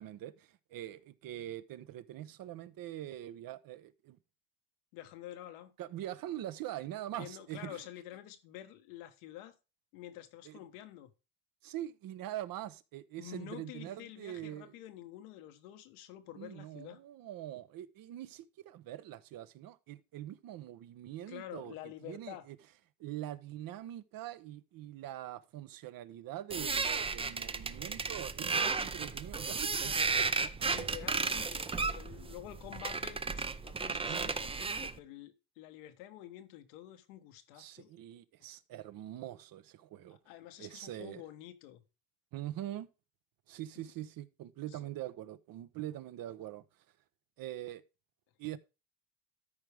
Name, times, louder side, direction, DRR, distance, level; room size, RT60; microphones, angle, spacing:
voice 1, 0.0-4.2 5.8-7.8 10.4-10.6 11.6-14.7 16.3-21.7 22.0-22.6 23.0-30.5 33.9-34.3 37.6-40.2 40.6-41.2 42.3-42.9 43.5-46.6 47.4-47.8 48.4-48.6, right 13 dB, 55° right, 0.9 m, -43 dB
voice 2, 4.9-5.7 7.2-9.5 9.9-11.1 13.2-17.0 21.3-22.4 30.6-33.2 33.5-37.9 40.1-41.8 43.7-43.8 44.7-44.9, left 13 dB, 85° left, 1.3 m, -48 dB
sound 1, 26.5-35.0, right 4 dB, 15° right, 0.5 m, -34 dB
13.0 x 4.8 x 3.4 m
supercardioid pair, 95°, 42 cm